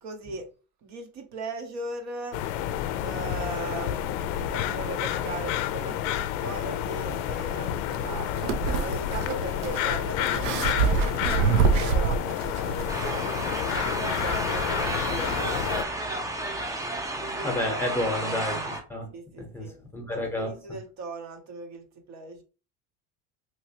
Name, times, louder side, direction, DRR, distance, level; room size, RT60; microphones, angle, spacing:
voice 1, 0.0-0.5 0.8-2.4 3.0-13.4 13.7-16.7 17.3-17.6 17.8-18.1 19.1-19.8 20.1-22.4, right 3 dB, 45° right, 0.7 m, -39 dB
sound 1, 2.3-15.8, left 11 dB, 70° left, 0.5 m, -30 dB
sound 2, 7.9-13.1, right 5 dB, 80° right, 0.7 m, -26 dB
sound 3, 12.9-18.8, right 2 dB, 10° right, 0.4 m, -31 dB
voice 2, 17.4-19.1 19.4-20.5, left 1 dB, 5° left, 0.8 m, -30 dB
3.1 x 3.0 x 2.8 m
cardioid pair, 135°, 38 cm